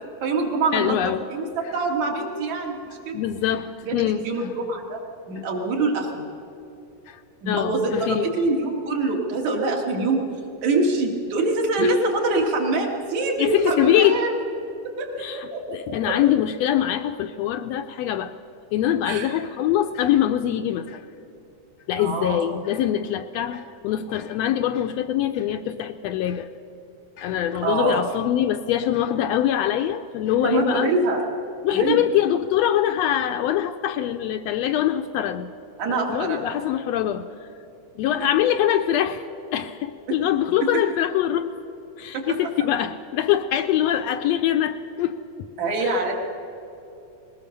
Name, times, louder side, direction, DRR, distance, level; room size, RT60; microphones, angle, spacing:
voice 1, 0.2-1.0 1.3-3.2 3.8-5.0 5.3-6.3 7.4-10.2 10.6-14.4 14.8-16.2 19.1-19.3 22.0-22.5 27.6-28.0 30.4-31.2 31.7-32.0 35.8-36.7 38.2-38.3 40.6-40.8 42.1-42.2 45.6-46.1, right 2 dB, 70° right, 0 dB, 3.6 m, -25 dB
voice 2, 0.7-1.2 3.1-4.3 7.1-7.2 7.5-8.2 11.8-11.9 13.4-14.2 15.2-18.3 18.7-21.0 21.9-26.5 27.2-30.9 31.6-35.5 35.9-37.3 38.0-41.5 42.0-45.2 45.8-46.0, left 11 dB, 80° left, 8 dB, 1.6 m, -23 dB
20.5 x 19.0 x 6.6 m, 2.8 s
omnidirectional pair, 3.3 m